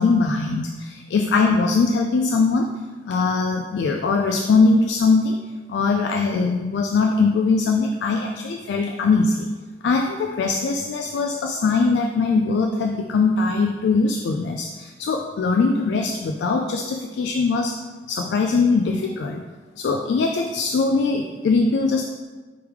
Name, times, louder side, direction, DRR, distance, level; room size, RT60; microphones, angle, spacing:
voice 1, 0.0-2.7 3.1-5.4 5.7-9.5 9.8-17.7 18.1-19.4 19.8-22.0, left 4 dB, 85° left, 3 dB, 0.3 m, -21 dB
4.6 x 3.5 x 3.2 m, 1.3 s
head